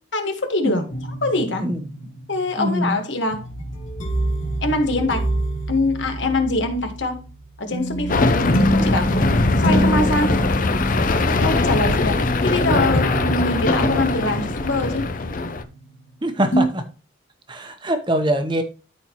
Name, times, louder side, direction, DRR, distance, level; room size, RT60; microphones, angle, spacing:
voice 1, 0.1-0.8 1.2-1.7 2.3-3.4 4.6-5.3 5.7-7.3 7.6-8.3 8.7-9.2 9.6-10.4 11.2-15.1, left 2 dB, 70° left, 1.5 m, -23 dB
sound 1, 0.9-16.1 16.5-16.7, right 1 dB, 85° left, 2.4 m, -26 dB
voice 2, 1.6-2.1 2.6-3.0 16.2-16.9 17.5-18.6, right 1 dB, 25° right, 1.0 m, -23 dB
sound 2, 8.1-15.6, left 3 dB, 45° left, 0.6 m, -21 dB
13.0 x 4.4 x 3.0 m
head